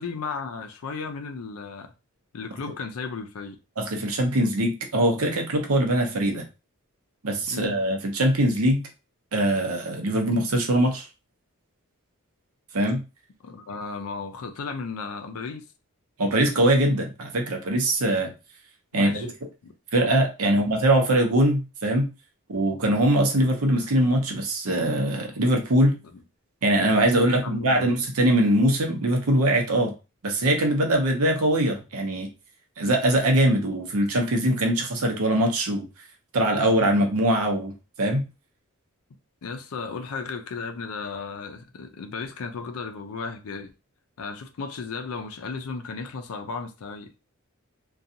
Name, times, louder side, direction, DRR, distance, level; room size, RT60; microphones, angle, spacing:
voice 1, 0.0-1.9 2.3-3.6 7.5-7.8 13.4-15.6 18.9-19.3 19.6-19.7 20.4-20.6 26.1-26.2 27.2-27.9 39.4-43.7 44.2-47.1, left 4 dB, 70° left, 0.4 m, -35 dB
voice 2, 3.8-6.4 7.2-8.8 9.3-11.1 12.7-13.0 16.2-18.3 18.9-19.3 19.9-22.1 22.5-26.0 26.6-29.9 30.2-32.3 32.8-35.9 36.3-37.7 38.0-38.2, right 1 dB, 75° right, 0.7 m, -22 dB
2.5 x 2.3 x 2.7 m
head